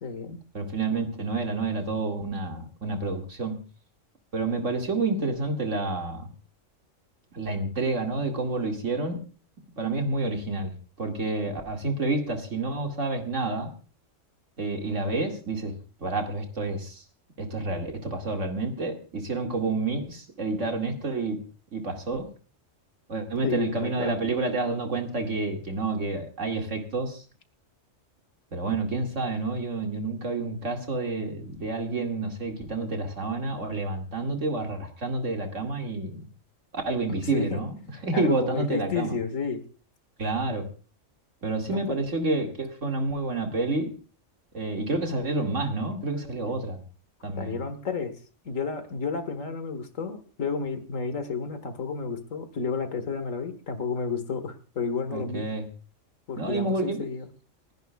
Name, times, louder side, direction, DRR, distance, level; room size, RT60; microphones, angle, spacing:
voice 1, 0.0-0.4 23.4-24.2 37.3-37.6 38.1-39.6 41.7-42.0 47.4-48.1 48.5-55.5 56.3-57.3, left 5 dB, 85° left, 9 dB, 2.0 m, -31 dB
voice 2, 0.5-3.6 4.3-6.3 7.3-9.2 9.8-13.7 14.6-15.7 16.0-17.0 17.4-21.4 21.7-22.3 23.1-27.2 28.5-36.3 36.7-39.2 40.2-40.7 41.4-43.9 44.5-46.8 47.2-47.6 55.1-55.7 56.4-57.0, right 3 dB, 70° right, 2 dB, 2.6 m, -29 dB
29.5 x 10.5 x 2.4 m, 0.36 s
omnidirectional pair, 1.3 m